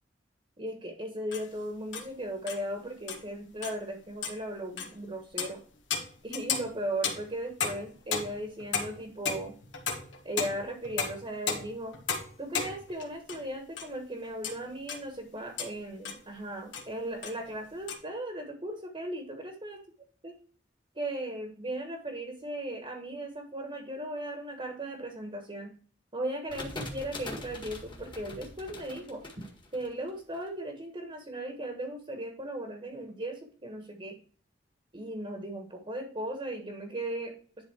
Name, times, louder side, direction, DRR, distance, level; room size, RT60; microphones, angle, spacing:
voice 1, 0.6-5.6 6.2-9.5 10.2-12.0 12.4-19.8 20.2-20.4 20.9-25.7 26.1-29.2 29.7-34.2 34.9-37.6, right 1 dB, 30° right, 4 dB, 1.3 m, -37 dB
sound 1, 1.3-1.5 1.9-2.1 2.5-2.6 3.1-3.3 3.6-3.8 4.2-4.4 4.8-4.9 5.4-5.6 5.9-13.5 13.8-13.9 14.2-15.0 15.6-15.7 16.0-16.2 16.7-16.9 17.2-17.9, left 6 dB, 80° left, 1.8 m, -34 dB
sound 2, 26.5-30.4, left 2 dB, 25° left, 1.7 m, -42 dB
11.0 x 3.7 x 4.6 m, 0.42 s
head